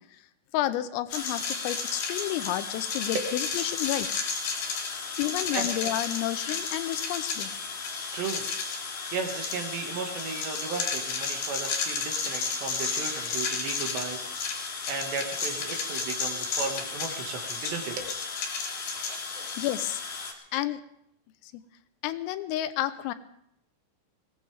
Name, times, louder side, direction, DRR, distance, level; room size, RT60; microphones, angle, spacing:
voice 1, 0.5-4.2 5.2-7.5 19.0-19.1 19.6-20.0 20.5-20.8 21.4-21.6 22.0-23.1, left 13 dB, 85° left, 12 dB, 3.4 m, -31 dB
sound 1, 1.1-20.3, left 5 dB, 55° left, 3.3 m, -32 dB
voice 2, 8.1-8.8 9.1-14.6 14.9-18.1 18.9-19.5, right 5 dB, 65° right, 3 dB, 3.6 m, -35 dB
22.5 x 18.0 x 3.5 m, 0.73 s
omnidirectional pair, 6.0 m